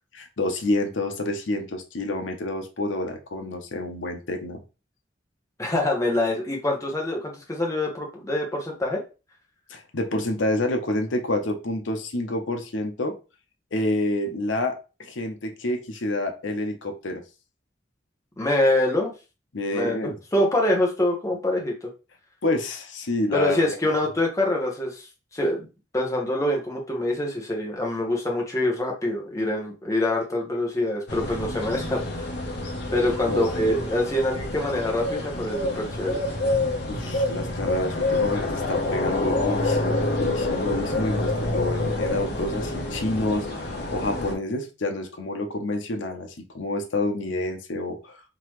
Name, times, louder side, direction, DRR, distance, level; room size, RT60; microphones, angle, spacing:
voice 1, 0.2-4.6 9.7-13.2 13.7-17.2 19.5-20.2 22.4-23.7 33.3-33.4 36.9-48.2, left 2 dB, 90° left, 0.8 m, -28 dB
voice 2, 5.6-9.0 18.4-19.1 19.7-21.9 23.3-25.1 25.3-25.7 25.9-32.3 32.9-36.2, left 1 dB, 15° left, 1.0 m, -25 dB
sound 1, 31.1-44.3, left 2 dB, 60° left, 0.9 m, -27 dB
3.8 x 2.8 x 3.0 m
head